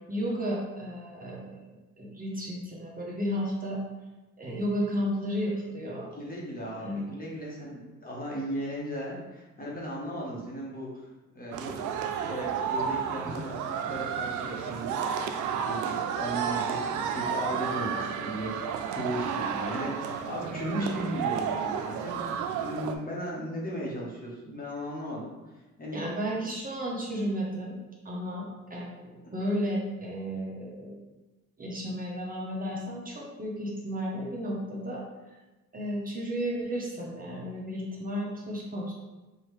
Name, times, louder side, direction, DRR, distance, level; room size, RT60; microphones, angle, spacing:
voice 1, 0.1-3.8 4.4-6.1 6.8-7.0 25.9-27.8 28.0-31.0 31.6-35.0 35.7-38.9, equal, 30° right, -4 dB, 1.0 m, -33 dB
voice 2, 6.2-11.1 11.3-11.7 12.3-15.0 15.4-22.3 22.6-25.3 25.8-26.0, equal, 30° left, -4 dB, 1.4 m, -36 dB
sound 1, 11.5-22.9, right 7 dB, 80° right, 0.5 m, -32 dB
4.9 x 2.7 x 3.2 m, 1.1 s
cardioid pair, 90°, 30 cm